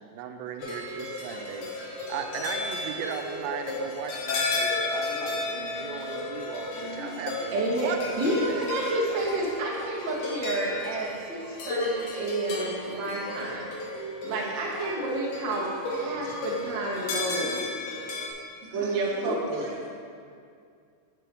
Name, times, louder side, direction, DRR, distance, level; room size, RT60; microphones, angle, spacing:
voice 1, 0.0-8.0 8.3-8.6, right 7 dB, 90° right, 6 dB, 2.4 m, -37 dB
sound 1, 0.6-18.3, left 2 dB, 65° left, 2.6 m, -34 dB
voice 2, 2.1-2.9 9.1-9.5 11.5-11.6 12.0-12.1 14.7-15.1 18.7-19.9, equal, ahead, -9 dB, 1.5 m, -46 dB
voice 3, 7.5-13.7 14.2-17.9 18.6-19.7, right 2 dB, 55° right, -4 dB, 1.3 m, -30 dB
10.5 x 7.6 x 3.4 m, 2.3 s
omnidirectional pair, 4.0 m